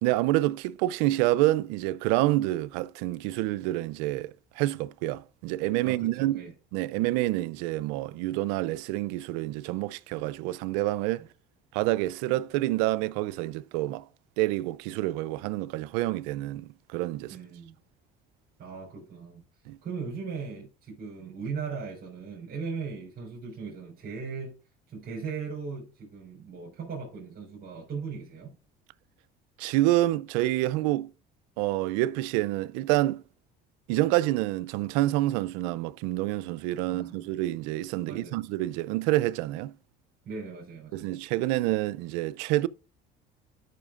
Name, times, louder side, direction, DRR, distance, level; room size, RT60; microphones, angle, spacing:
voice 1, 0.0-6.4 6.7-11.2 11.7-14.0 14.4-17.4 19.7-19.8 29.6-31.1 31.6-33.2 33.9-39.7 40.9-42.7, right 17 dB, 85° right, 0.4 m, -27 dB
voice 2, 5.8-6.5 17.3-17.8 18.6-19.4 19.8-24.5 24.9-28.5 36.9-37.3 38.1-38.4 40.2-41.1, right 5 dB, 45° right, 4.1 m, -38 dB
12.5 x 5.7 x 2.4 m
supercardioid pair, 80°, 21 cm